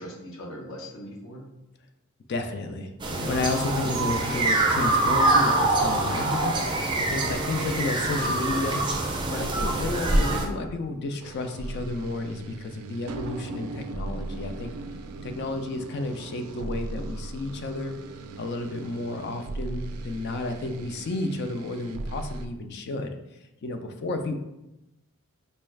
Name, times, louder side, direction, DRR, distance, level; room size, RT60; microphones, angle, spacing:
voice 1, 0.0-1.4, equal, 70° left, -1 dB, 0.8 m, -40 dB
voice 2, 2.3-2.9 3.2-8.8 9.3-14.7 15.2-18.0 18.4-23.1 23.6-24.4, left 2 dB, 50° left, 6 dB, 0.4 m, -32 dB
sound 1, 3.0-10.4, right 2 dB, 20° right, 0.4 m, -24 dB
sound 2, 11.2-22.5, right 2 dB, 90° right, 0.3 m, -38 dB
4.2 x 2.3 x 3.2 m, 0.92 s
head